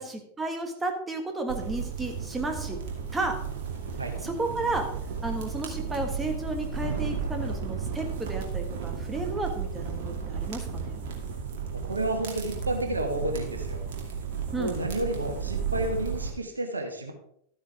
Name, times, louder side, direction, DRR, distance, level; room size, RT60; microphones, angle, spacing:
voice 1, 0.0-2.8 3.1-3.4 4.2-4.9 5.2-11.0 14.5-14.7, right 2 dB, 10° right, 4 dB, 1.6 m, -33 dB
sound 1, 1.5-16.3, right 6 dB, 55° right, 2.3 m, -34 dB
voice 2, 11.7-13.8 14.6-17.1, right 1 dB, 80° right, 4 dB, 1.5 m, -31 dB
12.5 x 8.9 x 3.5 m, 0.69 s
figure-of-eight pair, 90°, 0 cm